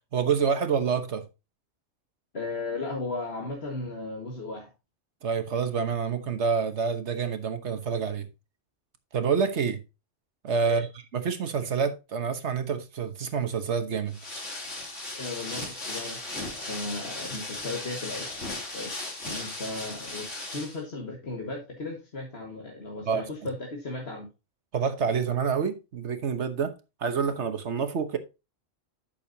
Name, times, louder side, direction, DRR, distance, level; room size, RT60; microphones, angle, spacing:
voice 1, 0.1-1.2 5.2-8.3 9.1-9.8 10.4-10.9 11.1-14.2 23.0-23.2 24.7-28.2, right 6 dB, 65° right, 1.4 m, -27 dB
voice 2, 2.3-4.7 10.6-10.8 15.1-18.9 19.2-24.3, left 3 dB, 55° left, 2.0 m, -36 dB
sound 1, 14.1-20.8, left 2 dB, 75° left, 3.3 m, -36 dB
11.5 x 6.7 x 2.8 m
omnidirectional pair, 1.3 m